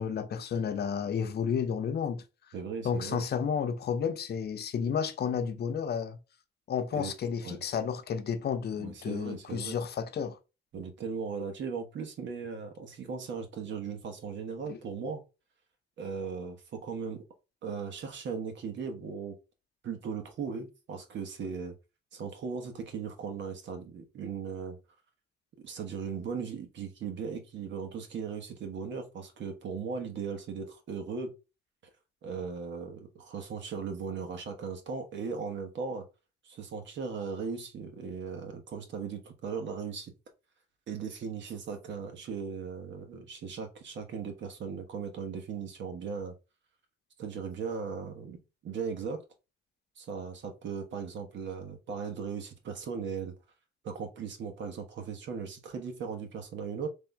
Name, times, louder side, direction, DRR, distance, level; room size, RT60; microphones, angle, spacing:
voice 1, 0.0-2.2 2.8-6.2 6.7-10.4 14.7-14.8, left 7 dB, 55° left, 0.7 m, -31 dB
voice 2, 2.5-3.2 6.9-7.1 7.4-7.6 8.8-9.8 10.7-15.2 16.0-17.2 17.6-19.4 19.8-21.8 22.1-24.8 25.6-31.3 32.2-36.0 36.4-40.1 40.9-46.3 47.2-48.4 48.6-49.2 50.0-53.3 53.8-56.9, right 5 dB, 65° right, 1.1 m, -38 dB
3.4 x 2.7 x 4.6 m
cardioid pair, 90°, 20 cm